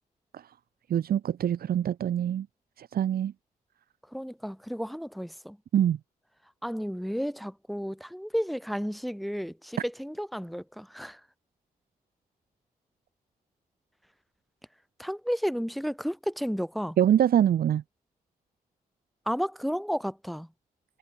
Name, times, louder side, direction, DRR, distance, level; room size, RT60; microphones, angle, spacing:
voice 1, 0.9-2.5 2.8-3.3 5.7-6.0 17.0-17.8, right 10 dB, 85° right, 1.3 m, -24 dB
voice 2, 4.1-5.6 6.6-11.2 15.0-17.0 19.3-20.5, equal, ahead, 7.0 m, -32 dB
wide cardioid pair, 120°, 15 cm